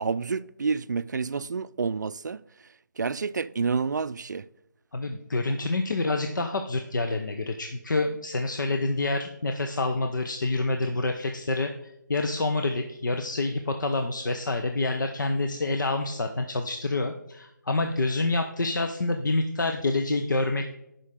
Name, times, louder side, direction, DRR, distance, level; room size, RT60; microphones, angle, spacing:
voice 1, 0.0-2.4 3.0-4.5, right 5 dB, 65° right, 0.4 m, -29 dB
voice 2, 4.9-11.7 12.1-20.7, left 2 dB, 70° left, 0.7 m, -27 dB
11.5 x 5.5 x 3.6 m
figure-of-eight pair, 170°, 11 cm